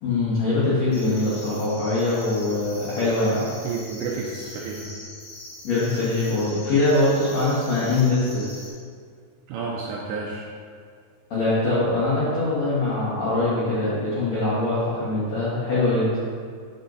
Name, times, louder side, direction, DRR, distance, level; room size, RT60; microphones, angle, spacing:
voice 1, 0.0-3.4 5.6-8.5 11.3-16.1, left 2 dB, 75° left, -10 dB, 1.5 m, -23 dB
sound 1, 0.9-8.7, left 1 dB, 55° left, 2.4 m, -42 dB
voice 2, 3.6-4.9 9.5-10.5, right 4 dB, 85° right, -2 dB, 2.5 m, -31 dB
9.7 x 6.1 x 2.7 m, 2.1 s
omnidirectional pair, 5.5 m